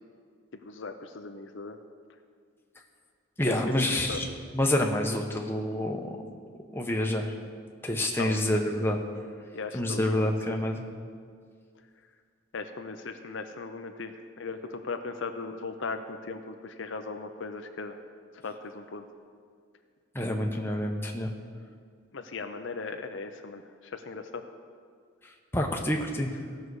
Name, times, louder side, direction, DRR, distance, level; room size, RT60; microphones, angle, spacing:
voice 1, 0.6-1.8 3.4-4.2 8.2-8.5 9.5-10.6 12.5-18.0 18.4-19.0 22.1-24.4, left 4 dB, 60° left, 7 dB, 0.6 m, -38 dB
voice 2, 3.4-4.2 4.5-6.2 6.7-7.3 7.8-9.0 9.7-10.8 20.1-21.3 25.5-26.4, left 1 dB, 10° left, 1 dB, 0.9 m, -27 dB
17.0 x 6.5 x 4.8 m, 2.1 s
head